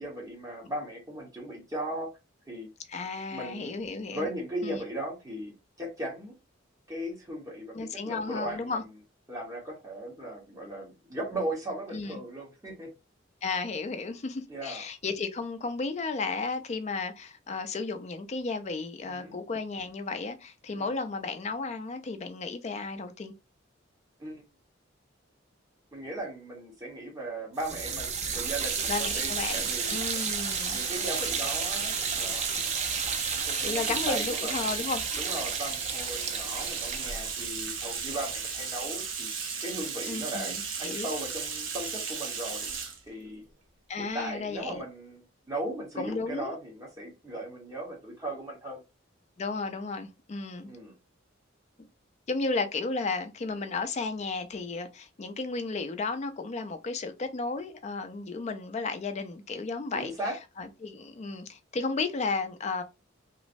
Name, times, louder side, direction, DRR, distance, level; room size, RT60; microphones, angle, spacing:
voice 1, 0.0-2.1 2.5-2.7 3.3-3.8 4.1-6.3 6.9-8.8 9.3-12.9 14.5-14.8 19.0-19.4 20.8-20.9 24.2-24.4 25.9-30.0 30.7-32.4 33.3-34.6 35.1-42.7 43.1-43.4 44.0-45.2 45.5-48.8 50.6-50.9 59.9-60.4, right 1 dB, 20° right, 1.0 m, -37 dB
voice 2, 2.9-4.3 4.6-4.8 7.7-8.8 11.9-12.2 13.4-23.3 28.9-30.8 33.6-35.0 40.0-41.1 43.9-44.8 46.0-46.6 49.4-50.7 52.3-60.1 60.6-62.8, left 3 dB, 35° left, 0.4 m, -33 dB
sound 1, 27.6-38.6, right 6 dB, 35° right, 0.4 m, -33 dB
Bathtub (filling or washing), 28.3-43.0, right 6 dB, 75° right, 0.7 m, -35 dB
3.0 x 2.0 x 2.5 m
head